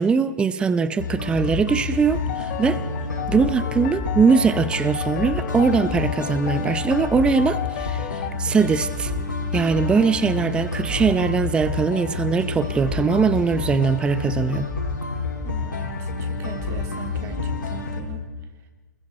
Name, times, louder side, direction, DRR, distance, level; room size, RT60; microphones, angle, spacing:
voice 1, 0.0-2.8 3.3-9.1 9.5-14.7, right 5 dB, 10° right, 0.7 m, -21 dB
sound 1, 1.0-18.0, left 3 dB, 75° left, 5.3 m, -28 dB
sound 2, 2.1-8.3, left 13 dB, 40° left, 1.6 m, -34 dB
voice 2, 15.4-18.2, right 6 dB, 25° right, 3.0 m, -40 dB
28.0 x 21.5 x 4.6 m
figure-of-eight pair, 115°, 10 cm